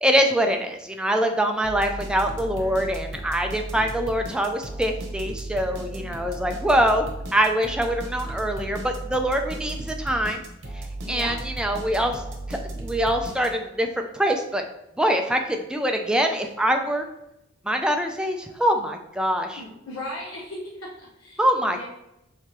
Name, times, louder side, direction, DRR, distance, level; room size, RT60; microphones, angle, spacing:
voice 1, 0.0-10.4 11.1-12.2 12.5-13.9 14.1-14.6 15.0-17.0 17.7-19.6 21.4-21.8, equal, 5° right, 4 dB, 0.3 m, -24 dB
sound 1, 1.6-13.8, right 2 dB, 60° right, 0.9 m, -35 dB
voice 2, 11.1-11.4 19.6-21.9, left 1 dB, 80° left, -4 dB, 0.8 m, -37 dB
4.8 x 3.3 x 2.9 m, 0.84 s
head